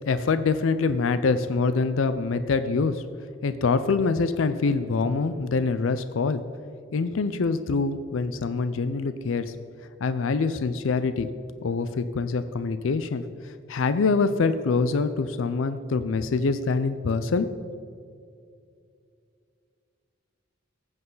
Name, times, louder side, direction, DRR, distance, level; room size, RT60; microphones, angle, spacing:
voice 1, 0.1-3.0 3.4-6.4 6.9-9.5 10.0-11.3 11.6-17.5, left 4 dB, 85° left, 11 dB, 0.5 m, -25 dB
15.0 x 8.0 x 3.9 m, 2.4 s
head